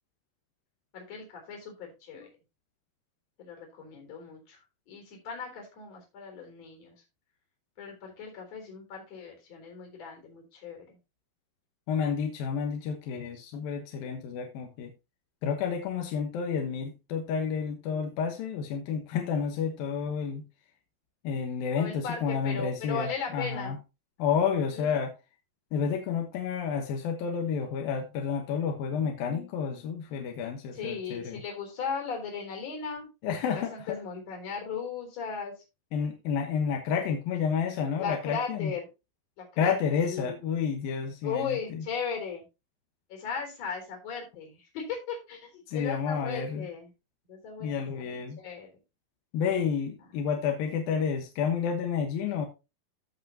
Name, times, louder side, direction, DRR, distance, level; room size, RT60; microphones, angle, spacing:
voice 1, 0.9-2.3 3.4-4.6 4.9-7.0 7.8-11.0 21.8-23.8 24.7-25.0 30.7-33.1 33.5-35.5 38.0-38.9 39.4-39.8 40.1-40.4 41.2-42.5 43.1-46.9 47.3-47.7 48.0-48.7, left 6 dB, 45° left, 2 dB, 4.9 m, -37 dB
voice 2, 11.9-14.9 15.4-20.4 21.2-23.8 24.2-25.1 25.7-31.4 33.2-34.0 35.9-38.7 39.6-41.8 45.7-46.7 47.6-48.4 49.3-52.5, left 6 dB, 75° left, 3 dB, 3.1 m, -30 dB
16.0 x 5.6 x 2.8 m, 0.26 s
omnidirectional pair, 4.2 m